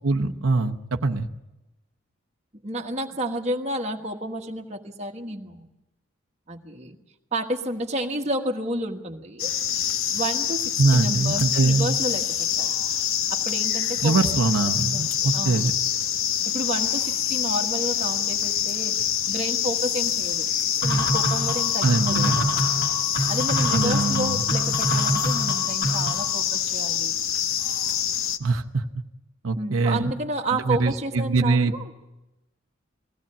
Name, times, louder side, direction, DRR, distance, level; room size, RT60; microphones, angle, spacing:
voice 1, 0.0-1.3 10.8-11.9 14.0-15.7 21.8-22.4 23.7-24.4 28.4-28.8 29.4-30.1 30.7-31.7, right 3 dB, 80° right, 3 dB, 0.8 m, -23 dB
voice 2, 2.6-5.7 6.5-7.0 7.3-9.5 10.1-12.7 13.3-15.0 15.3-15.6 16.5-18.9 19.3-20.5 20.8-22.6 23.3-27.1 29.6-31.9, right 1 dB, 35° right, 2 dB, 1.4 m, -31 dB
sound 1, 9.4-28.4, left 9 dB, 80° left, 0.8 m, -26 dB
sound 2, 20.8-26.4, equal, 65° left, 3.8 m, -26 dB
21.0 x 16.0 x 8.7 m, 1.0 s
head